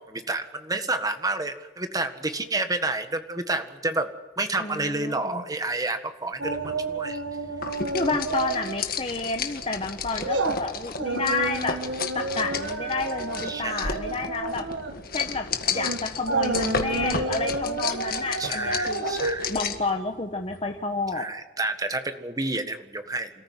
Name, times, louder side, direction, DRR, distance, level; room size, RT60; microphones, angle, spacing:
voice 1, 0.0-4.1 4.4-7.2 13.4-13.9 18.4-19.5 21.1-23.3, right 2 dB, 20° right, 8 dB, 1.6 m, -29 dB
voice 2, 4.6-5.4 7.9-11.8 12.1-14.6 15.1-19.1 19.5-21.3, left 3 dB, 30° left, 5 dB, 1.2 m, -30 dB
sound 1, 6.4-8.8 9.1-9.3 9.8-20.7 21.1-21.2, right 3 dB, 90° right, 1.7 m, -30 dB
sound 2, 7.6-19.9, left 5 dB, 50° left, 1.8 m, -33 dB
27.5 x 14.0 x 8.0 m, 1.2 s
head